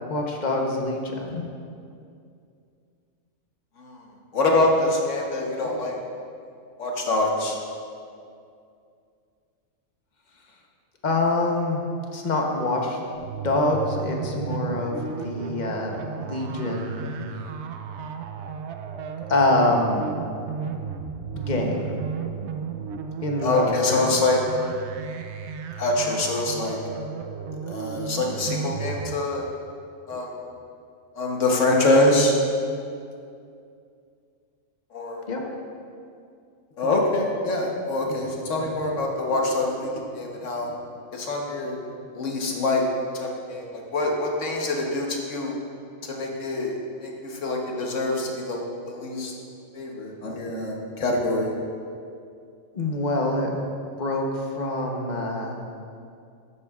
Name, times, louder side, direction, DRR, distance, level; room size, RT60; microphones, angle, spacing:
voice 1, 0.1-1.4 11.0-11.8 12.1-13.0 13.4-15.0 15.2-17.1 19.3-20.1 21.3-22.0 23.2-24.1 35.3-35.4 52.7-53.6 54.0-55.6, left 2 dB, 40° left, 1 dB, 0.9 m, -25 dB
voice 2, 4.3-5.9 6.8-7.6 23.4-24.4 25.8-26.8 27.7-29.5 30.1-30.3 31.1-32.4 34.9-35.3 36.8-40.7 41.1-41.8 42.1-42.8 43.1-45.5 46.0-49.3 49.7-51.5, left 2 dB, 70° left, 0 dB, 1.4 m, -25 dB
sound 1, 13.1-29.2, right 6 dB, 65° right, 0.8 m, -34 dB
12.0 x 8.5 x 2.4 m, 2.4 s
omnidirectional pair, 1.4 m